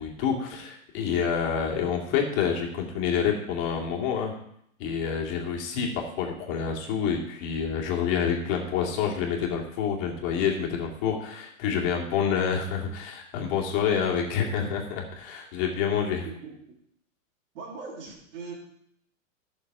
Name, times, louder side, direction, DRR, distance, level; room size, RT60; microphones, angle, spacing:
voice 1, 0.0-4.3 4.8-16.3, left 7 dB, 40° left, 0 dB, 2.4 m, -28 dB
voice 2, 16.2-16.8 17.5-18.5, right 4 dB, 60° right, -3 dB, 3.3 m, -40 dB
14.0 x 6.7 x 4.7 m, 0.73 s
hypercardioid pair, 140°, 41 cm